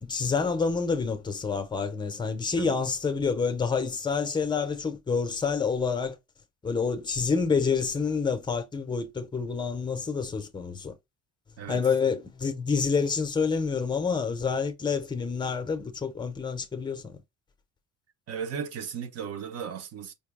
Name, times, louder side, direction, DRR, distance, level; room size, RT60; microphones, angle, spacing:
voice 1, 0.0-6.2 6.6-10.9 11.7-17.2, left 5 dB, 15° left, 0.7 m, -28 dB
voice 2, 18.3-20.1, right 7 dB, 50° right, 0.9 m, -36 dB
5.3 x 2.2 x 3.4 m
cardioid pair, 175°, 32 cm